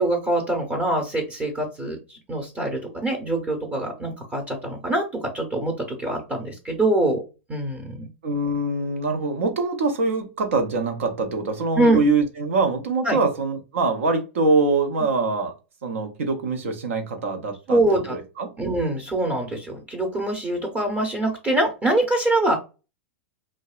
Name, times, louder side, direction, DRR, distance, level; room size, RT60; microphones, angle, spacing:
voice 1, 0.0-7.2 7.5-8.1 11.7-12.0 13.0-13.2 17.7-18.1 18.6-22.6, right 2 dB, 25° right, 0.8 m, -24 dB
voice 2, 8.2-15.5 15.8-17.8 18.1-18.5, right 3 dB, 80° right, 0.7 m, -24 dB
2.7 x 2.1 x 2.3 m
hypercardioid pair, 110°, 7 cm